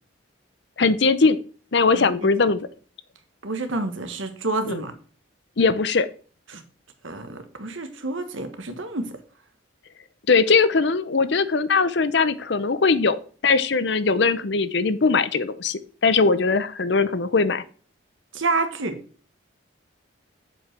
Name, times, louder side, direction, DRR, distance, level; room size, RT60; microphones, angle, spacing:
voice 1, 0.8-1.4 1.7-2.7 4.7-4.8 5.6-6.1 10.3-17.6, left 4 dB, 60° left, 14 dB, 0.6 m, -20 dB
voice 2, 1.9-2.3 3.4-4.9 6.5-6.6 7.0-9.1 18.3-19.0, right 3 dB, 75° right, 8 dB, 1.4 m, -28 dB
7.3 x 5.4 x 5.9 m, 0.41 s
head